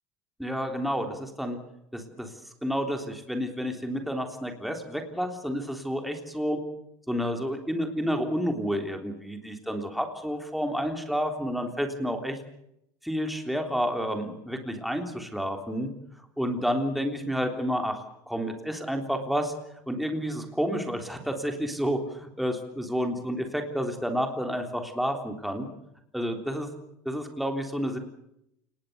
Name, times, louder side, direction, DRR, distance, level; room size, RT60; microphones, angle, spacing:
voice 1, 0.4-1.6 1.9-2.3 2.6-6.6 7.1-12.4 13.0-15.9 16.4-19.5 19.9-25.7 26.1-26.7 27.1-28.0, equal, ahead, 4 dB, 3.4 m, -30 dB
29.0 x 19.0 x 6.9 m, 0.78 s
cardioid pair, 150°, 9 cm